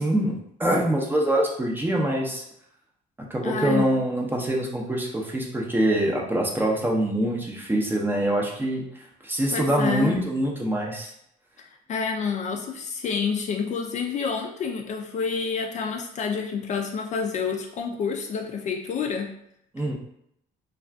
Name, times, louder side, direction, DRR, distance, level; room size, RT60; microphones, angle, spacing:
voice 1, 0.0-2.4 3.3-8.8 9.2-11.1 19.7-19.9, right 1 dB, 10° right, -1 dB, 0.6 m, -24 dB
voice 2, 3.4-3.9 9.5-10.2 11.9-19.3, left 5 dB, 45° left, 2 dB, 0.4 m, -28 dB
2.4 x 2.3 x 3.3 m, 0.76 s
cardioid pair, 110°, 17 cm